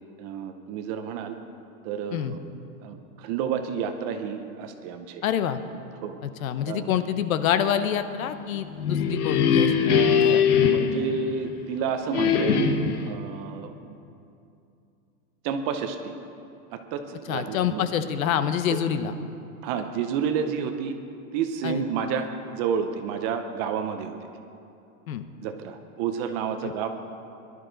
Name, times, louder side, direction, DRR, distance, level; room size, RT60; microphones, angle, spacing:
voice 1, 0.2-1.3 1.8-2.4 2.8-5.2 6.0-6.2 6.6-6.9 9.8-14.0 15.4-16.2 16.7-17.8 18.7-18.8 19.6-21.0 21.3-24.3 25.4-26.9, right 7 dB, 30° right, 7 dB, 0.6 m, -30 dB
voice 2, 5.2-5.6 6.2-10.4 17.3-19.1 21.6-21.9 25.1-25.2 26.6-26.7, left 9 dB, 70° left, 11 dB, 0.9 m, -27 dB
sound 1, 8.6-11.7 12.1-13.1, left 7 dB, 85° left, 1.2 m, -22 dB
19.5 x 12.0 x 3.9 m, 2.6 s
supercardioid pair, 155°, 43 cm